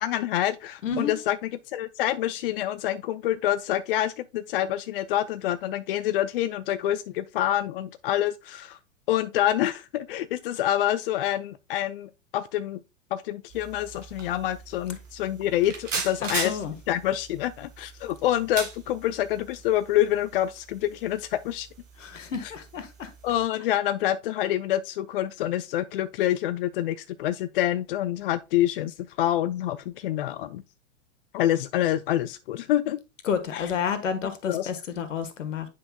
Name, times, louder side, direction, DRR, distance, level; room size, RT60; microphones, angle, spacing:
voice 1, 0.0-8.8 9.1-12.8 13.1-21.7 22.4-22.5 23.2-30.6 31.3-33.0 33.5-33.7 34.4-34.7, left 12 dB, 45° left, 0.4 m, -27 dB
voice 2, 0.8-1.1 16.2-16.7 22.0-23.1 33.3-35.7, left 7 dB, 65° left, 1.4 m, -30 dB
sound 1, 13.5-23.4, right 5 dB, 70° right, 2.2 m, -39 dB
9.4 x 5.6 x 2.3 m
figure-of-eight pair, 100°, 40 cm